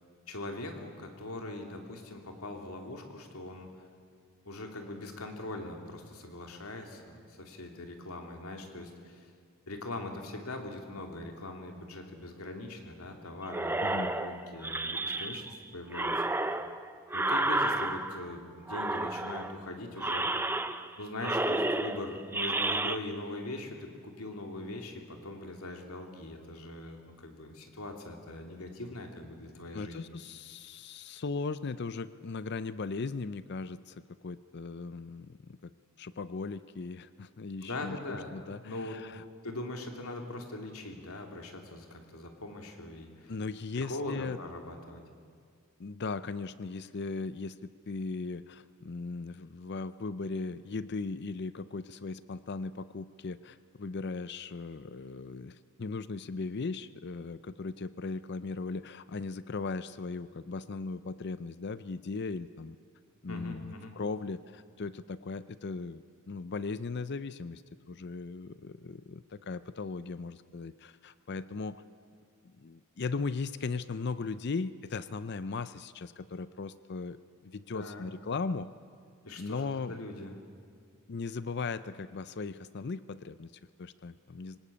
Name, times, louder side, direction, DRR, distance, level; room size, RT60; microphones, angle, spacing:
voice 1, 0.3-3.7 4.4-9.3 9.7-16.2 17.1-20.5 21.0-30.0 37.6-38.3 38.6-39.0 39.4-43.3 43.7-45.0 63.3-63.9 77.7-78.0 79.2-80.3, left 2 dB, 80° left, 3 dB, 3.0 m, -41 dB
sound 1, 13.5-15.6 15.9-18.3 18.7-19.6 20.0-20.9 21.2-23.0, right 2 dB, 10° right, 0.6 m, -31 dB
voice 2, 13.8-14.1 29.7-35.7 36.0-39.2 43.3-44.4 45.8-62.8 63.2-67.6 67.9-71.8 72.4-77.2 77.4-78.7 79.4-79.9 81.1-84.6, left 4 dB, 50° left, 14 dB, 0.5 m, -38 dB
24.5 x 19.0 x 8.6 m, 2.1 s
head